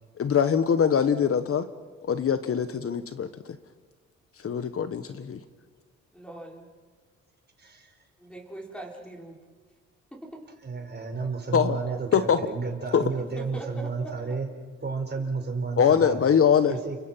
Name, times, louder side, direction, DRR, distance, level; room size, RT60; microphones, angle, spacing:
voice 1, 0.2-1.6 2.0-3.3 4.4-5.4 11.5-11.8 12.1-12.4 12.9-13.0 15.8-16.8, left 7 dB, 50° left, 11 dB, 1.3 m, -22 dB
voice 2, 6.1-6.7 8.2-9.4 13.4-14.1, right 2 dB, 5° left, -1 dB, 5.9 m, -41 dB
voice 3, 7.6-7.9 10.6-14.5 14.8-16.2 16.7-17.0, right 4 dB, 35° right, 4 dB, 4.9 m, -32 dB
30.0 x 25.5 x 5.7 m, 1.5 s
cardioid pair, 90°, 30 cm